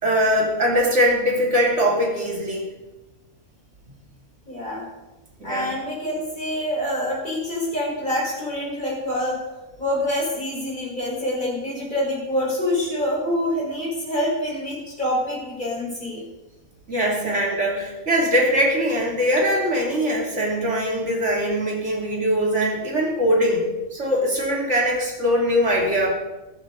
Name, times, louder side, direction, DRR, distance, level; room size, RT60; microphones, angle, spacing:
voice 1, 0.0-2.7 5.4-5.7 16.9-26.1, equal, 55° right, -2 dB, 3.3 m, -21 dB
voice 2, 4.5-4.9 5.4-9.4 9.8-16.2, left 1 dB, 30° left, -4 dB, 5.3 m, -26 dB
14.5 x 14.5 x 4.1 m, 1.1 s
omnidirectional pair, 1.5 m